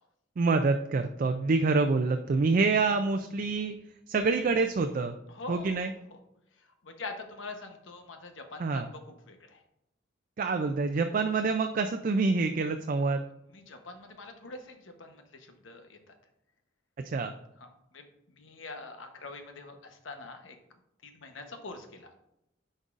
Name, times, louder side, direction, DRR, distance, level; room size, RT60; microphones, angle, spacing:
voice 1, 0.4-3.8 4.1-5.2 5.5-5.9 8.6-8.9 10.4-13.3 17.0-17.4, right 4 dB, 45° right, 6 dB, 0.4 m, -26 dB
voice 2, 5.3-5.9 6.6-9.0 9.3-9.6 13.5-16.1 17.6-18.1 18.4-20.6 21.0-22.2, left 3 dB, 90° left, 5 dB, 1.0 m, -44 dB
9.8 x 5.3 x 2.5 m, 0.82 s
head